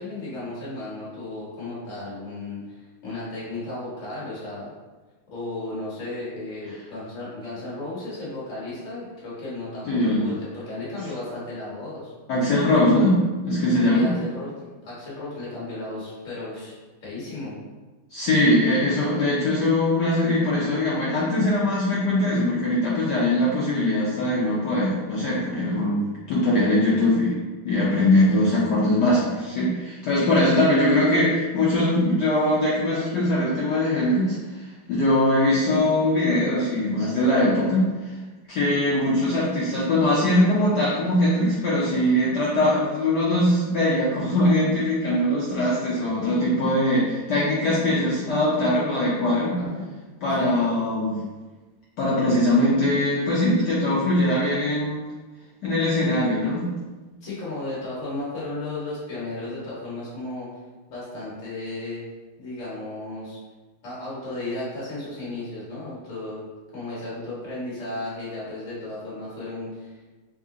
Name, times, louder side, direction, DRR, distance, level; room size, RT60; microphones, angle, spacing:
voice 1, 0.0-4.7 5.3-12.1 13.9-16.8 17.0-17.6 30.3-30.4 49.6-49.9 50.4-50.6 57.2-60.5 60.9-62.0 62.4-63.4 63.8-66.5 66.7-70.0, left 2 dB, 40° left, -8 dB, 1.4 m, -34 dB
voice 2, 9.9-10.3 12.3-14.1 18.1-27.4 27.6-37.8 38.5-49.6 50.2-51.2 52.0-55.0 55.6-56.7, left 1 dB, 70° left, -7 dB, 1.0 m, -21 dB
3.5 x 2.1 x 3.6 m, 1.3 s
omnidirectional pair, 2.4 m